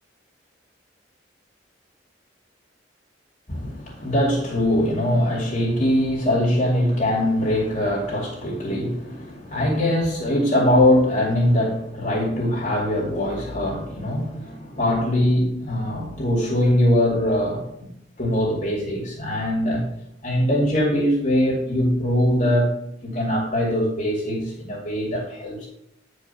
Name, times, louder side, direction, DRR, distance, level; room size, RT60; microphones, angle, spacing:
voice 1, 3.5-17.9 18.2-19.8 20.2-25.7, left 1 dB, 40° left, 2.4 m, -22 dB
10.0 x 4.8 x 5.6 m
head